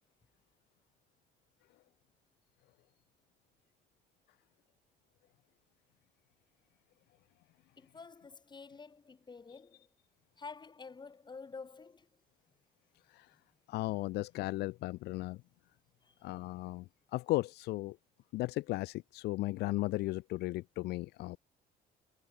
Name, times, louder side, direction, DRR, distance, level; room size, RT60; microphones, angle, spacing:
voice 1, 7.8-9.9 10.4-12.2 13.3-13.4 16.0-16.3, left 4 dB, 25° left, 7.5 m, -50 dB
voice 2, 13.7-15.4 16.2-16.8 17.1-18.0 18.3-21.4, left 18 dB, 75° left, 0.6 m, -35 dB
cardioid pair, 110°, 17 cm